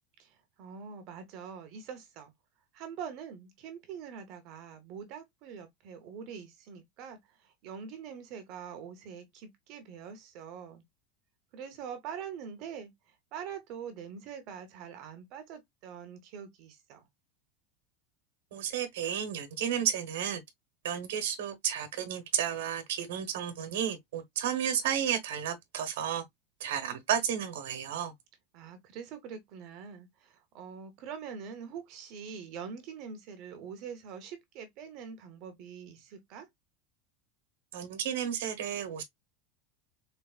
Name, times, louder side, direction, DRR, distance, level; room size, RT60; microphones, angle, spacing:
voice 1, 0.2-2.3 2.7-10.8 11.5-17.1 28.5-36.5, right 7 dB, 35° right, 0.8 m, -44 dB
voice 2, 18.5-20.4 20.8-26.2 26.6-28.1 37.7-39.0, right 9 dB, 80° right, 1.1 m, -32 dB
4.3 x 3.2 x 2.3 m
supercardioid pair, 180°, 0 cm